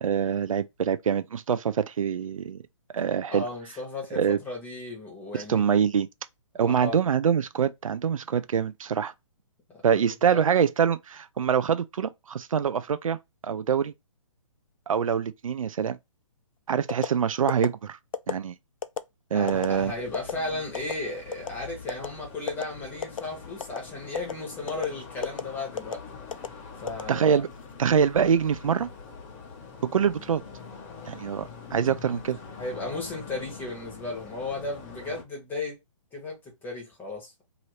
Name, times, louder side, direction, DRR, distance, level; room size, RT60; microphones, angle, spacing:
voice 1, 0.0-2.6 2.9-3.5 4.1-4.4 5.3-6.1 6.5-9.1 9.8-13.2 13.4-13.9 14.9-16.0 16.7-18.0 18.3-18.5 19.3-19.9 27.1-27.5 27.8-28.9 29.9-30.4 31.1-32.4, right 7 dB, 85° right, 0.4 m, -25 dB
voice 2, 3.3-5.6 6.7-7.0 9.9-10.4 19.3-26.0 26.8-27.4 28.6-28.8 31.6-31.9 32.6-35.8 36.1-36.4 36.6-37.4, left 2 dB, 10° left, 1.2 m, -35 dB
sound 1, 16.9-17.1 17.5-17.7 18.1-18.4 18.8-19.0 19.5-19.7 20.1-20.3 20.7-20.9 21.3-21.5 21.9-22.1 22.5-22.6 23.0-23.3 23.6-23.8 24.1-24.3 24.7-24.9 25.2-25.4 25.8-26.0 26.3-26.5 26.9-27.5 27.9-28.2, left 7 dB, 85° left, 0.4 m, -30 dB
sound 2, 19.5-35.2, left 5 dB, 25° left, 0.9 m, -44 dB
2.8 x 2.7 x 3.1 m
hypercardioid pair, 150°, 17 cm